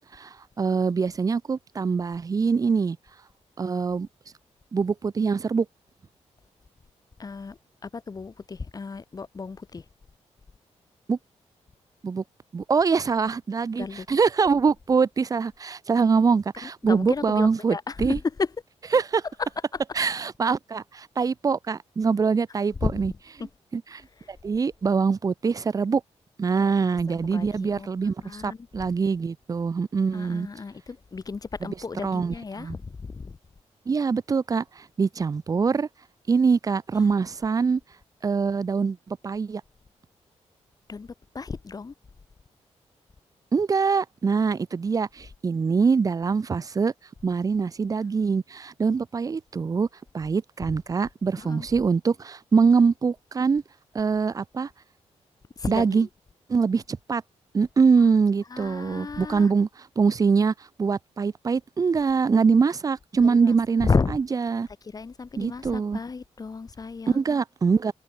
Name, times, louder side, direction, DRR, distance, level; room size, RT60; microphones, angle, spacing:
voice 1, 0.1-3.0 3.6-4.1 4.7-5.7 11.1-11.2 12.0-12.2 12.5-18.2 18.9-19.2 20.0-23.1 23.7-23.8 24.3-26.0 26.4-30.5 31.6-31.7 32.0-32.8 33.9-35.9 36.3-37.8 38.2-39.6 43.5-46.9 47.2-49.9 50.1-53.6 53.9-54.7 55.7-56.1 56.5-57.2 57.5-59.7 60.0-60.5 60.8-63.9 64.5-64.7 65.4-66.0 67.1-67.9, right 5 dB, 30° right, 0.6 m, -23 dB
voice 2, 7.2-9.9 13.7-14.1 16.6-18.5 19.4-19.8 22.8-22.9 24.2-24.3 27.1-27.9 28.2-28.9 30.1-33.4 36.9-37.0 40.9-41.9 51.4-51.7 55.6-56.1 58.5-59.5 63.2-64.2 64.8-67.2, left 4 dB, 30° left, 2.3 m, -32 dB
wide cardioid pair, 135°, 12 cm